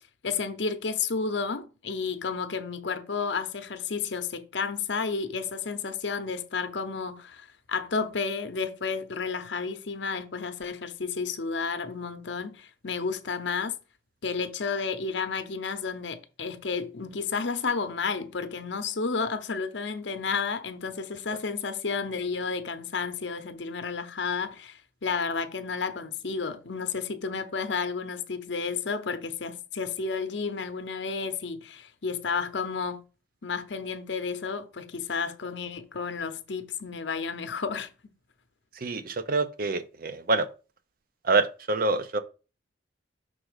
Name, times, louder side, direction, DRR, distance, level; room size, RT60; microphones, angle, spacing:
voice 1, 0.2-13.8 14.2-33.0 33.4-37.9, left 5 dB, 65° left, 0.8 m, -31 dB
voice 2, 38.8-40.5 41.2-42.2, right 3 dB, 50° right, 0.6 m, -26 dB
6.1 x 3.8 x 4.9 m
head